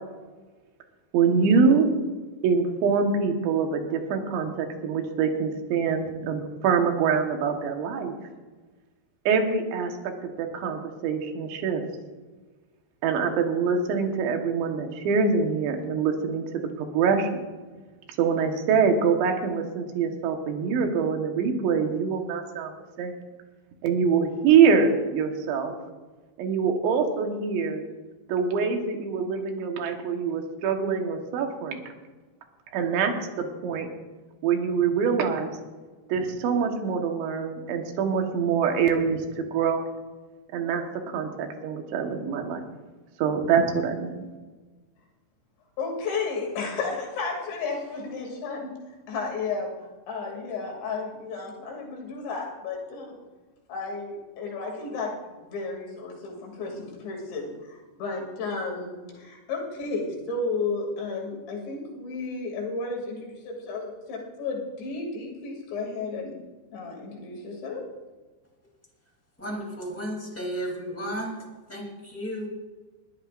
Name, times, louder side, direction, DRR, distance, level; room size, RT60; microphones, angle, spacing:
voice 1, 1.1-1.9 2.4-8.2 9.3-10.0 10.2-11.8 13.0-17.3 18.2-22.7 23.0-23.1 23.8-25.7 26.4-27.8 28.3-31.8 32.7-33.9 34.4-35.5 36.1-39.8 40.5-42.6 43.2-44.1, right 6 dB, 85° right, 4 dB, 3.7 m, -24 dB
voice 2, 45.8-48.7 49.1-49.7 50.1-53.2 53.7-66.3 66.7-67.8, left 3 dB, 85° left, 0 dB, 5.0 m, -33 dB
voice 3, 69.4-71.4 71.7-72.5, equal, 5° left, -1 dB, 2.0 m, -33 dB
21.0 x 14.5 x 2.6 m, 1.3 s
omnidirectional pair, 5.0 m